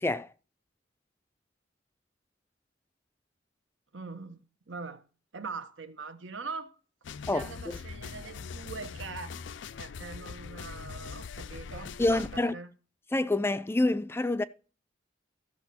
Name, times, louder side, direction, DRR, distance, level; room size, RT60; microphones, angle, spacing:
voice 1, 3.9-4.4 4.7-5.0 5.3-6.7 7.2-9.3 9.8-12.7, right 4 dB, 85° right, 1.2 m, -42 dB
sound 1, 7.0-12.4, left 5 dB, 70° left, 0.5 m, -42 dB
voice 2, 12.0-12.5 13.1-14.4, left 2 dB, 15° left, 0.4 m, -27 dB
13.0 x 6.4 x 4.2 m
head